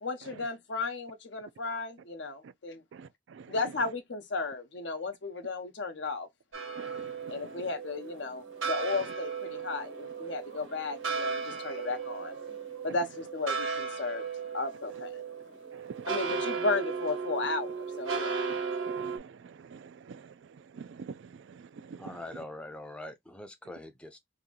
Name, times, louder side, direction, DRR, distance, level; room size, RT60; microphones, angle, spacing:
voice 1, 0.0-2.8 3.5-6.3 7.3-12.4 12.8-14.2 14.5-15.2 16.1-18.4, left 3 dB, 60° left, 0.7 m, -34 dB
voice 2, 2.9-3.9 6.7-7.7 8.9-9.1 11.5-11.6 12.9-13.0 14.9-15.0 15.7-16.5 18.9-22.4, right 5 dB, 70° right, 0.3 m, -47 dB
sound 1, 6.5-19.2, right 5 dB, 85° right, 1.3 m, -36 dB
voice 3, 22.0-24.2, left 1 dB, 5° left, 0.5 m, -43 dB
2.8 x 2.6 x 3.7 m
head